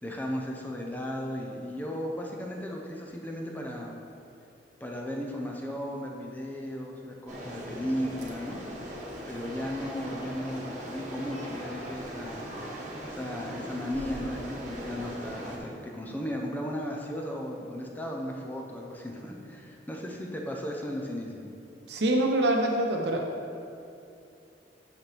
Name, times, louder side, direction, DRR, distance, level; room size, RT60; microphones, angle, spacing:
voice 1, 0.0-4.0 4.8-8.6 9.3-12.5 13.0-21.5, equal, 10° left, -1 dB, 0.6 m, -35 dB
sound 1, 7.3-15.6, equal, 45° right, 1.2 m, -39 dB
voice 2, 21.9-23.2, right 1 dB, 70° right, 1 dB, 0.8 m, -25 dB
8.4 x 6.1 x 3.4 m, 2.6 s
head